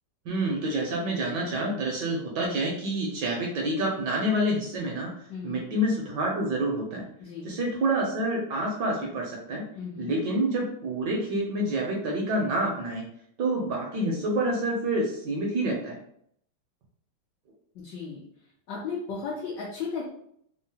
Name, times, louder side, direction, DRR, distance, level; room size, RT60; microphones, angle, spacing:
voice 1, 0.3-5.1 5.4-7.0 7.4-9.6 10.0-13.0 13.4-16.0, right 1 dB, 75° right, -1 dB, 1.1 m, -28 dB
voice 2, 5.3-5.6 7.2-7.5 9.8-10.1 17.8-18.2 18.7-20.0, left 5 dB, 70° left, -4 dB, 1.1 m, -35 dB
3.6 x 2.0 x 2.7 m, 0.68 s
omnidirectional pair, 2.2 m